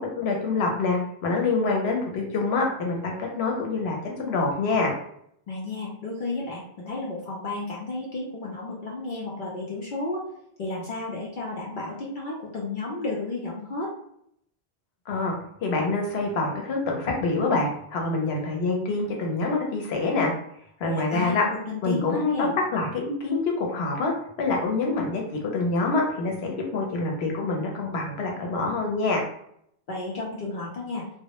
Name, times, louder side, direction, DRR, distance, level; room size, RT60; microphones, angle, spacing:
voice 1, 0.2-4.9 15.1-15.3 15.6-20.3 20.8-21.4 21.8-24.1 24.4-25.2 25.5-29.2, left 3 dB, 85° left, 1 dB, 0.9 m, -26 dB
voice 2, 5.5-10.2 10.6-13.9 20.8-22.5 29.9-31.0, left 2 dB, 60° left, -4 dB, 0.7 m, -32 dB
2.1 x 2.0 x 2.8 m, 0.71 s
omnidirectional pair, 1.0 m